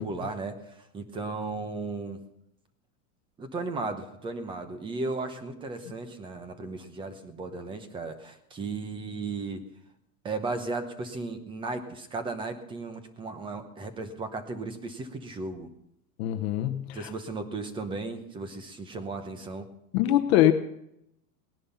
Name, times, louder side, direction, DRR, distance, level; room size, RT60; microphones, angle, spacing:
voice 1, 0.0-2.2 3.4-9.6 10.2-15.7 16.9-19.7, right 3 dB, 10° right, 9 dB, 0.8 m, -35 dB
voice 2, 16.2-17.1 19.9-20.5, left 13 dB, 40° left, 7 dB, 1.0 m, -23 dB
18.5 x 11.0 x 5.6 m, 0.80 s
supercardioid pair, 170°, 48 cm